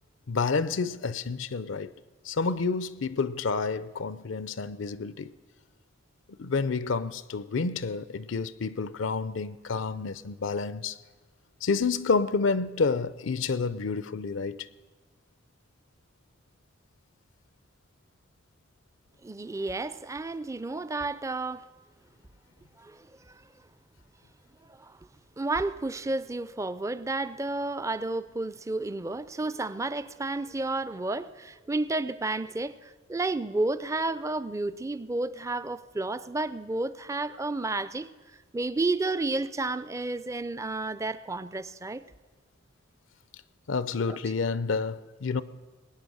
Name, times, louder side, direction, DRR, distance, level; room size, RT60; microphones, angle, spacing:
voice 1, 0.3-1.9 2.2-5.3 6.4-11.0 11.6-14.7 43.7-45.4, left 4 dB, 70° left, 0.5 m, -29 dB
voice 2, 19.2-21.7 22.8-23.4 24.7-25.0 25.4-38.1 38.5-42.0 44.1-44.2, right 2 dB, 15° right, 0.4 m, -31 dB
21.0 x 9.3 x 6.3 m
head